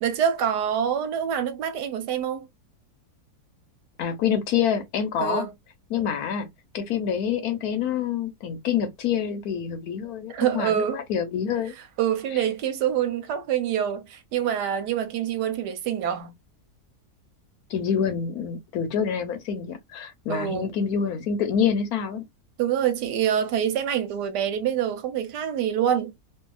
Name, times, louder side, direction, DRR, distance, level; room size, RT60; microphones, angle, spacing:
voice 1, 0.0-2.5 5.2-5.5 10.3-11.0 12.0-16.3 20.3-20.7 22.6-26.1, right 9 dB, 85° right, 1.3 m, -26 dB
voice 2, 4.0-5.5 5.9-6.5 6.7-11.7 17.7-22.2, left 7 dB, 70° left, 1.1 m, -26 dB
2.7 x 2.7 x 2.2 m
omnidirectional pair, 1.7 m